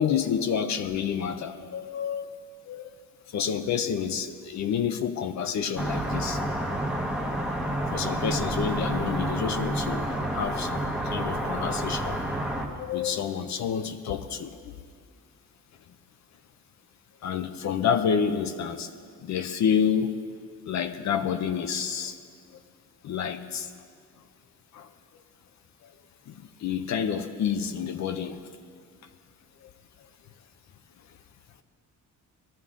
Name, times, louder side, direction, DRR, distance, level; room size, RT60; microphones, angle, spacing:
voice 1, 0.0-2.4 2.6-2.9 3.3-6.4 7.9-12.2 12.5-14.7 17.2-18.9 19.2-20.2 20.7-22.2 23.0-23.7 24.7-25.2 25.8-25.9 26.3-28.4 29.6-29.7, left 7 dB, 60° left, 8 dB, 0.6 m, -29 dB
sound 1, 5.8-12.7, right 1 dB, 5° right, 1.0 m, -29 dB
19.0 x 13.0 x 3.7 m, 2.1 s
cardioid pair, 155°, 32 cm